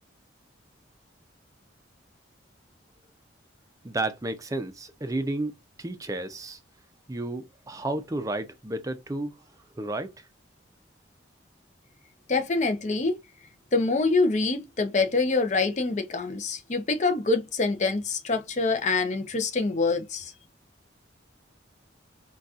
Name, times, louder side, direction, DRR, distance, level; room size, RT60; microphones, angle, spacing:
voice 1, 3.8-5.5 5.8-6.6 7.1-9.3 9.8-10.1, right 2 dB, 20° right, 0.4 m, -31 dB
voice 2, 12.3-13.2 13.7-20.3, left 3 dB, 40° left, 0.5 m, -25 dB
3.9 x 2.3 x 2.4 m
head